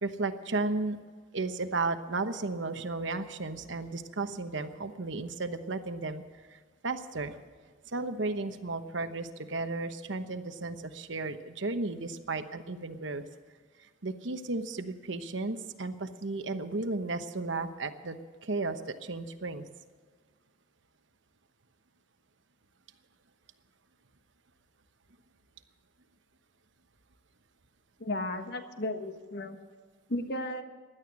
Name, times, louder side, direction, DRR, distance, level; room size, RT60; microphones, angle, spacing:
voice 1, 0.0-1.0 1.3-6.2 6.5-6.6 6.8-7.4 7.9-13.2 14.0-19.6, right 3 dB, 70° right, 9 dB, 1.1 m, -34 dB
voice 2, 28.0-29.6 30.1-30.6, left 1 dB, 55° left, 7 dB, 1.4 m, -34 dB
16.5 x 11.5 x 6.2 m, 1.5 s
head